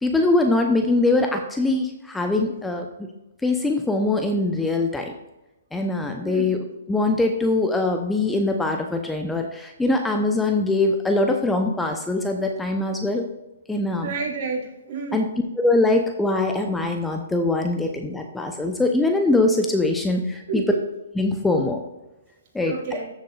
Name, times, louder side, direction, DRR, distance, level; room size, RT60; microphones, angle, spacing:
voice 1, 0.0-3.1 3.4-5.1 5.7-6.6 6.9-13.3 13.7-14.1 15.1-15.3 15.6-20.6 21.2-21.8 22.5-22.7, left 2 dB, 5° left, 4 dB, 0.8 m, -22 dB
voice 2, 6.2-6.6 14.0-15.3 20.5-20.8 22.6-23.1, right 4 dB, 50° right, -1 dB, 3.2 m, -30 dB
13.5 x 7.3 x 2.5 m, 1.0 s
hypercardioid pair, 135°, 0 cm